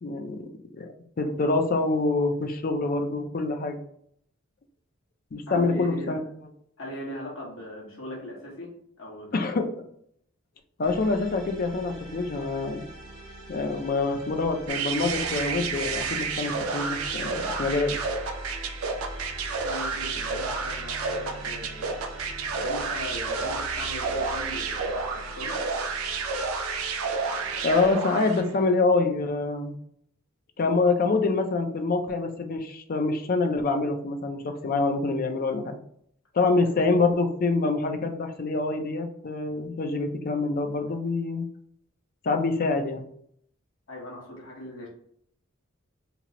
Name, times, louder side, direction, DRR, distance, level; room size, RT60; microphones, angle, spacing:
voice 1, 0.0-0.5 0.7-3.8 5.3-6.2 9.3-9.6 10.8-12.9 13.5-18.0 27.4-29.8 30.6-35.8 36.3-41.4 42.2-43.0, left 3 dB, 45° left, 5 dB, 0.4 m, -26 dB
voice 2, 5.5-6.2 6.8-9.6 19.6-22.0 22.5-25.6 36.6-36.7 43.9-44.9, left 1 dB, 70° left, -2 dB, 1.1 m, -39 dB
sound 1, 10.8-27.9, right 1 dB, 50° right, 1.1 m, -42 dB
sound 2, 14.7-28.5, right 4 dB, 90° right, 0.5 m, -30 dB
2.9 x 2.0 x 3.7 m, 0.68 s
head